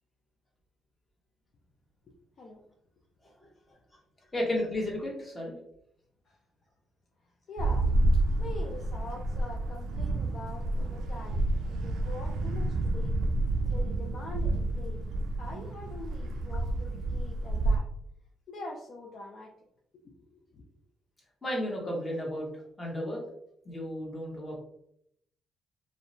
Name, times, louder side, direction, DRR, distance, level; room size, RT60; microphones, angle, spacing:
voice 1, 4.3-5.5 21.4-22.5 22.8-23.2 23.6-24.6, left 1 dB, 25° left, -2 dB, 1.0 m, -33 dB
voice 2, 7.5-7.9 8.4-13.2 13.7-15.0 15.4-17.9 18.5-19.5 20.0-20.6, left 2 dB, 55° left, 0 dB, 0.4 m, -44 dB
sound 1, 7.6-17.8, right 2 dB, 80° right, 0.3 m, -29 dB
2.6 x 2.1 x 2.6 m, 0.73 s
cardioid pair, 90°, 0 cm